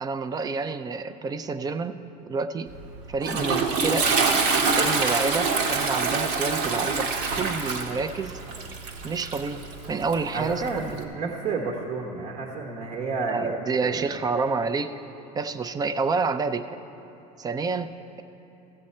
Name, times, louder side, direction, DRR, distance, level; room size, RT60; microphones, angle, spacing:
voice 1, 0.0-2.0 2.3-2.7 3.1-4.1 4.8-8.4 9.0-11.1 13.2-15.0 15.4-16.7 17.4-17.9, right 4 dB, 20° right, 11 dB, 0.4 m, -28 dB
Toilet flush, 2.7-11.0, right 4 dB, 75° right, 1.3 m, -26 dB
voice 2, 10.3-13.5 13.8-14.1, right 4 dB, 45° right, 1 dB, 1.0 m, -31 dB
15.5 x 7.6 x 4.3 m, 3.0 s
supercardioid pair, 120°, 18 cm